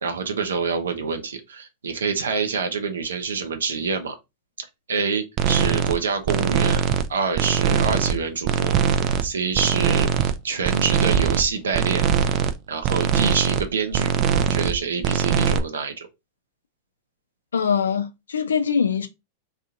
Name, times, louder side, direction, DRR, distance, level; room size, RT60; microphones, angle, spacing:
voice 1, 0.0-4.1 4.9-6.8 7.1-8.8 9.2-12.0 12.7-14.1 14.4-16.1, right 5 dB, 80° right, 0.6 m, -26 dB
sound 1, 5.4-6.0 6.3-7.1 7.4-8.2 8.5-9.3 9.5-10.3 10.6-11.5 11.7-12.5 12.8-13.7 13.9-14.8 15.0-15.6, right 8 dB, 45° right, 0.4 m, -21 dB
voice 2, 17.5-19.1, left 6 dB, 85° left, 0.5 m, -22 dB
2.8 x 2.4 x 3.6 m
hypercardioid pair, 100°, 0 cm